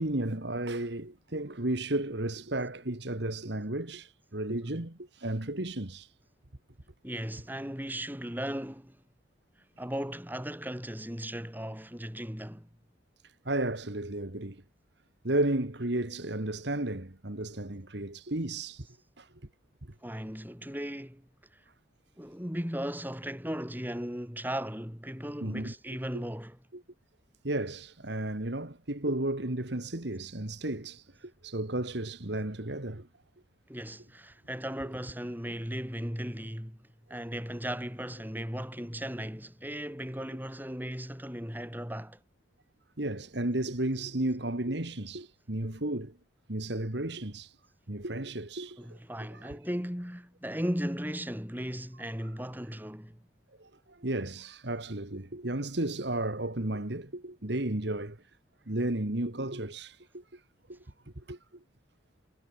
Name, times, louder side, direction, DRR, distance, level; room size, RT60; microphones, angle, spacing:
voice 1, 0.0-6.1 13.5-14.6 15.2-18.9 19.2-19.3 25.4-25.7 26.1-26.2 26.7-26.8 27.4-33.1 43.0-46.1 46.5-47.5 47.9-49.0 49.3-49.6 53.6-58.2 58.7-60.4 60.7-60.8 61.2-61.4, right 1 dB, 60° right, 2.0 m, -33 dB
voice 2, 7.0-9.0 9.8-12.7 20.0-21.6 22.2-26.6 33.7-36.8 37.1-42.2 48.8-53.2, equal, 10° right, 7.2 m, -37 dB
head